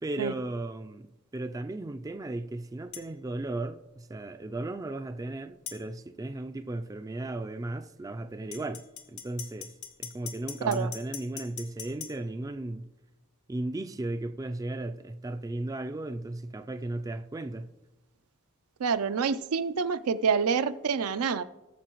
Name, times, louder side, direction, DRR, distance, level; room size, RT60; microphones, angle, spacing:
voice 1, 0.0-8.8 9.1-9.7 10.0-12.9 13.5-17.7, right 2 dB, 15° right, 0.3 m, -35 dB
sound 1, 2.9-3.1 5.7-5.8 8.5-12.1, left 9 dB, 80° left, 1.2 m, -41 dB
voice 2, 18.8-21.4, right 6 dB, 80° right, 0.5 m, -27 dB
18.5 x 7.0 x 3.0 m
head